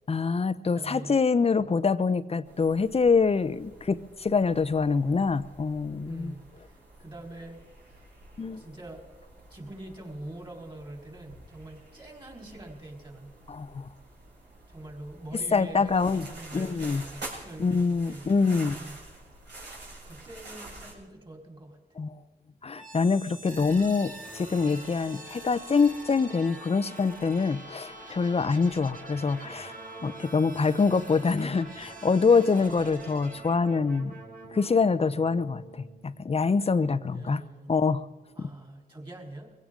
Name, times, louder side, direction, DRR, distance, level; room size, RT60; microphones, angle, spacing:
voice 1, 0.1-6.3 8.4-8.6 13.5-13.9 15.5-16.3 16.5-17.0 17.6-18.8 22.0-22.1 22.6-29.7 30.0-34.1 34.5-37.4 37.7-38.1 38.4-38.5, left 4 dB, 35° left, 14 dB, 0.7 m, -25 dB
voice 2, 0.7-1.2 6.0-8.1 8.5-9.0 9.5-13.4 14.7-18.2 18.7-19.0 20.0-22.0 37.0-37.8 38.3-39.5, right 1 dB, 25° right, 1 dB, 4.3 m, -44 dB
sound 1, 2.4-20.9, right 2 dB, 75° right, 5.2 m, -48 dB
sound 2, 22.7-36.6, right 2 dB, 50° right, 2.8 m, -45 dB
23.0 x 16.5 x 3.8 m, 1.4 s
cardioid pair, 75°, 18 cm